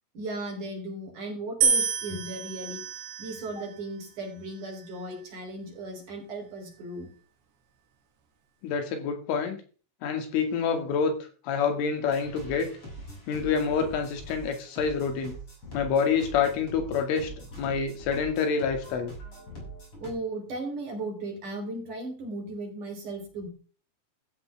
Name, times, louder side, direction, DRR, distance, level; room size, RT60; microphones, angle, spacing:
voice 1, 0.1-2.8 3.2-7.1 20.0-23.5, right 2 dB, 45° right, 2 dB, 4.6 m, -36 dB
sound 1, 1.6-3.8 4.6-5.2, right 6 dB, 65° right, 4.4 m, -29 dB
voice 2, 8.6-9.6 10.0-12.7 13.3-15.4 15.7-17.3 17.6-19.1, left 6 dB, 80° left, 5 dB, 4.7 m, -27 dB
sound 2, 12.1-20.1, right 1 dB, 25° left, 7.8 m, -43 dB
14.5 x 14.0 x 3.5 m, 0.39 s
omnidirectional pair, 5.6 m